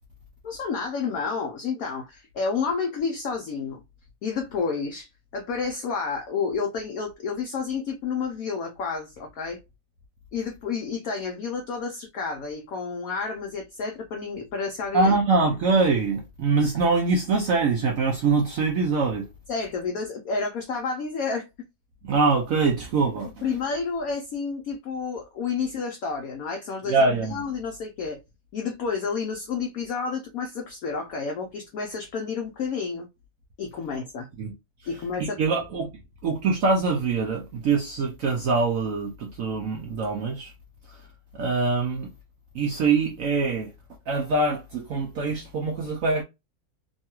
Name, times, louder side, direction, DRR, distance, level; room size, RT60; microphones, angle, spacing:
voice 1, 0.4-3.8 4.2-9.6 10.3-15.2 19.5-21.5 23.2-28.2 28.5-33.1 33.6-34.3 34.9-35.4, left 5 dB, 70° left, 0.8 m, -30 dB
voice 2, 14.9-19.3 22.0-23.5 26.9-27.4 34.4-34.5 35.2-35.9 36.2-40.5 41.3-42.1 42.5-43.7 44.1-46.2, right 4 dB, 85° right, 0.7 m, -24 dB
3.0 x 2.3 x 2.9 m
omnidirectional pair, 2.0 m